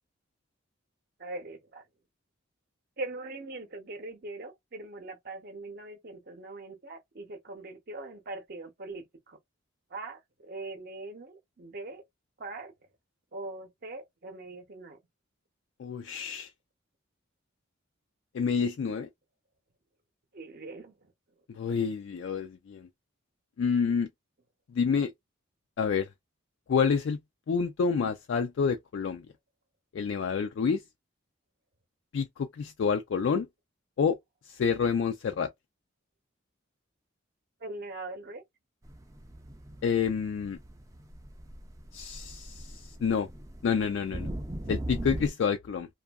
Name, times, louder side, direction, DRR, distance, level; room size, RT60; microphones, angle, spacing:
voice 1, 1.2-1.8 3.0-9.4 9.9-12.0 12.4-12.7 13.3-15.0 20.3-21.1 37.6-38.4, right 2 dB, 45° right, 0.7 m, -41 dB
voice 2, 15.8-16.5 18.3-19.1 21.5-22.9 23.6-24.1 24.7-25.1 25.8-26.1 26.7-27.2 27.5-29.3 29.9-30.8 32.1-33.5 34.0-34.2 34.5-35.5 39.8-40.6 41.9-43.3 43.6-44.3 44.7-45.9, left 6 dB, 65° left, 0.3 m, -28 dB
sound 1, 38.8-45.3, right 1 dB, 15° right, 0.4 m, -40 dB
2.6 x 2.4 x 2.3 m
head